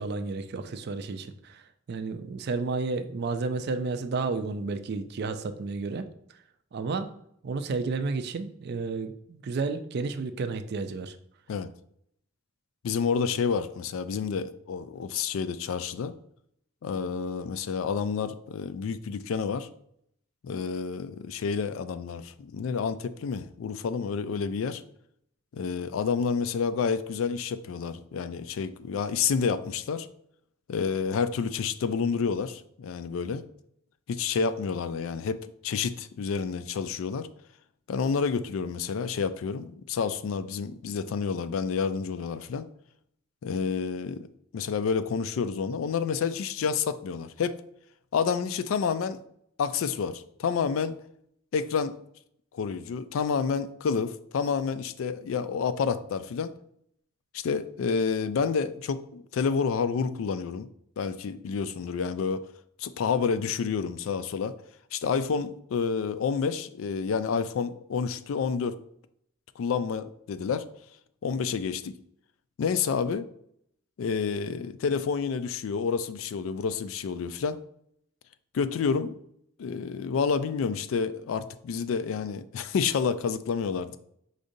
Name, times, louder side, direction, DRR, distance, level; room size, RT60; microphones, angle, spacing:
voice 1, 0.0-1.6 1.9-6.1 6.7-7.1 7.4-11.1, right 4 dB, 50° right, 9 dB, 0.4 m, -31 dB
voice 2, 12.8-16.1 16.8-19.7 20.4-24.8 25.5-30.1 30.7-33.4 34.1-37.3 37.9-42.7 43.4-44.3 44.5-47.6 48.1-49.2 49.6-51.0 51.5-52.0 52.5-56.5 57.3-60.7 61.0-62.5 62.8-64.5 64.9-68.8 69.6-70.7 71.2-71.9 72.6-73.3 74.0-77.6 78.5-79.2 79.6-84.0, left 6 dB, 75° left, 13 dB, 0.3 m, -29 dB
5.0 x 3.8 x 2.6 m, 0.70 s
head